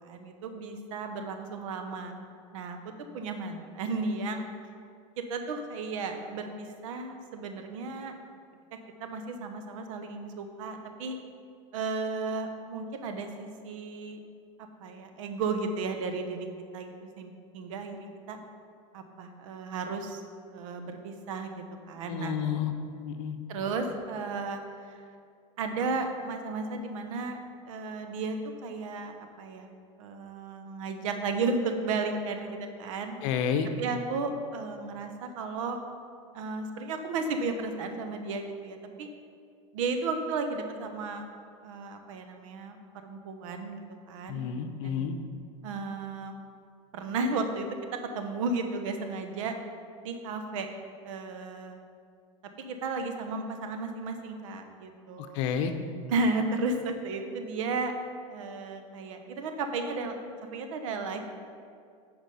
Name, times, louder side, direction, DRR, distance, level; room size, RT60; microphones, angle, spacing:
voice 1, 0.0-2.1 2.5-2.8 3.1-4.5 5.2-8.1 9.0-11.2 11.7-14.2 14.8-16.5 16.7-18.4 18.9-20.2 20.5-22.4 23.5-24.6 24.9-25.0 25.6-27.4 27.7-29.7 30.0-33.2 33.8-35.8 36.3-39.1 39.7-41.3 41.6-43.8 44.1-44.4 44.8-45.1 45.6-46.3 46.9-49.6 50.0-50.7 51.0-51.8 52.6-55.7 56.1-57.9 58.3-60.2 60.5-61.2, right 3 dB, 75° right, 6 dB, 1.1 m, -34 dB
voice 2, 22.1-22.7 23.1-23.4 33.2-33.7 44.3-45.1 55.2-55.7, left 8 dB, 65° left, 7 dB, 0.9 m, -30 dB
10.0 x 5.0 x 5.5 m, 2.3 s
supercardioid pair, 120°, 17 cm